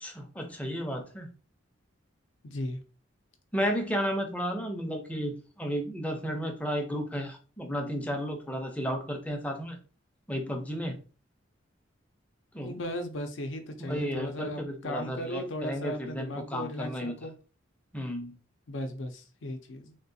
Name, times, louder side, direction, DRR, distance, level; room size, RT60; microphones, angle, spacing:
voice 1, 0.0-1.3 3.5-9.8 10.3-11.0 12.5-12.8 13.9-17.2 17.9-18.4, equal, 5° left, 3 dB, 0.5 m, -33 dB
voice 2, 2.4-2.8 12.6-17.3 18.7-20.0, left 1 dB, 65° left, 6 dB, 0.6 m, -36 dB
3.6 x 2.4 x 2.6 m, 0.37 s
head